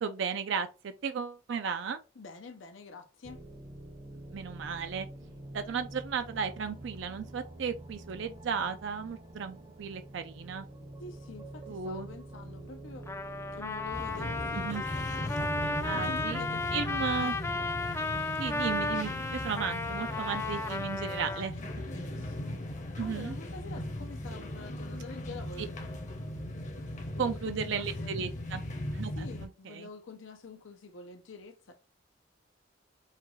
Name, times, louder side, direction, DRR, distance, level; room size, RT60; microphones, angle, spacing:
voice 1, 0.0-2.0 4.3-5.1 5.5-10.7 11.7-12.1 14.6-14.8 15.8-16.4 16.7-17.3 18.4-21.5 23.0-23.4 25.6-25.7 27.2-28.6 28.9-29.9, right 6 dB, 70° right, 0.4 m, -35 dB
voice 2, 2.2-3.5 11.0-13.1 13.5-15.5 15.9-17.7 21.2-22.6 23.0-25.8 26.8-28.1 29.2-31.7, left 3 dB, 85° left, 0.6 m, -47 dB
sound 1, 3.2-17.9, right 1 dB, 25° right, 0.6 m, -47 dB
Trumpet, 13.1-21.5, left 2 dB, 15° left, 0.3 m, -34 dB
sound 2, 13.9-29.5, left 1 dB, 40° left, 0.8 m, -38 dB
5.7 x 2.3 x 3.0 m
head